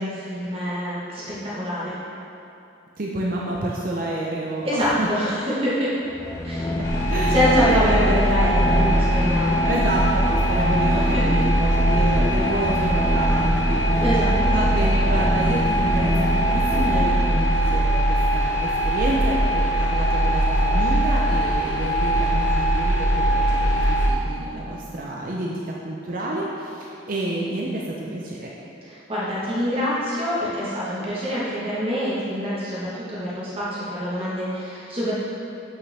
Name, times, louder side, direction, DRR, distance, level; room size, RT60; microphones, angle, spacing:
voice 1, 0.0-1.9 4.6-5.9 6.4-6.7 7.3-9.6 10.9-11.2 14.0-14.9 28.8-35.1, equal, 30° right, -9 dB, 1.3 m, -25 dB
voice 2, 3.0-5.1 6.8-7.4 7.7-8.5 9.6-14.0 14.4-28.5, right 1 dB, 45° right, -3 dB, 0.6 m, -29 dB
sound 1, 6.0-17.7, left 1 dB, 15° left, 0.5 m, -26 dB
sound 2, 6.8-24.1, right 1 dB, 80° left, 1.0 m, -21 dB
8.3 x 5.6 x 3.4 m, 2.8 s
head